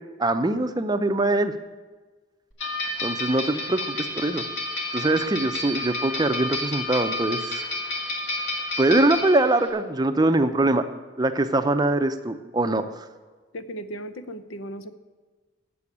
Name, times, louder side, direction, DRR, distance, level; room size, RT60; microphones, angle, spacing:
voice 1, 0.2-1.5 3.0-4.4 4.9-7.6 8.8-10.8 11.2-12.8, right 2 dB, 20° right, 9 dB, 0.5 m, -23 dB
sound 1, 2.6-9.7, left 2 dB, 65° left, 2.0 m, -30 dB
voice 2, 13.5-14.9, right 1 dB, 85° left, 10 dB, 0.7 m, -36 dB
8.3 x 6.9 x 8.6 m, 1.3 s
head